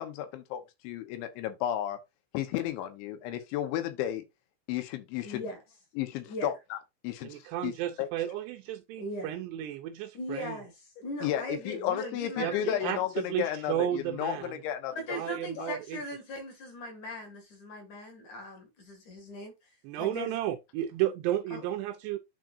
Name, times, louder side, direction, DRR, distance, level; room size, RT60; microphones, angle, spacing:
voice 1, 0.0-2.0 2.3-4.2 4.7-5.4 6.0-6.8 7.0-7.3 7.6-7.7 8.0-8.1 11.2-15.2 15.6-15.7, left 11 dB, 80° left, 3.3 m, -33 dB
voice 2, 5.2-5.6 6.3-6.5 9.0-9.3 10.1-13.0 14.9-19.7 20.0-20.4 21.5-21.6, left 1 dB, 50° left, 2.9 m, -39 dB
voice 3, 7.2-10.6 12.4-12.5 12.8-13.0 13.3-14.5 15.1-16.0 19.8-22.2, right 12 dB, 80° right, 2.5 m, -33 dB
11.0 x 3.9 x 2.6 m
omnidirectional pair, 5.3 m